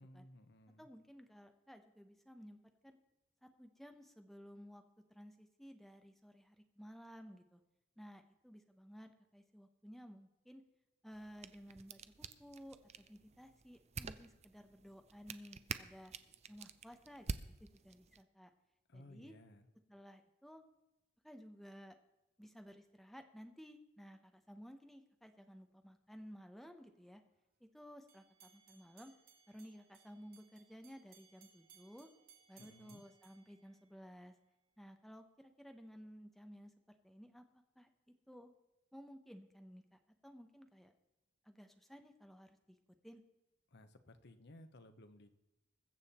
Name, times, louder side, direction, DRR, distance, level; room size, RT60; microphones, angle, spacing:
voice 1, 0.0-0.9 18.9-19.7 32.6-33.0 43.7-45.3, left 1 dB, 55° left, 10 dB, 1.0 m, -58 dB
voice 2, 0.8-3.0 3.4-4.8 5.1-7.6 8.0-10.6 11.0-16.1 16.5-18.5 18.9-19.3 19.9-20.6 21.2-22.0 22.4-27.2 27.6-29.1 29.5-32.1 32.5-34.3 34.8-36.7 37.0-38.5 38.9-40.9 41.4-42.8 43.0-43.2, equal, ahead, 6 dB, 0.9 m, -56 dB
sound 1, 11.1-18.2, right 5 dB, 35° right, 0.5 m, -49 dB
sound 2, 28.1-34.3, right 7 dB, 50° right, 1.5 m, -66 dB
21.5 x 7.2 x 4.3 m, 0.95 s
head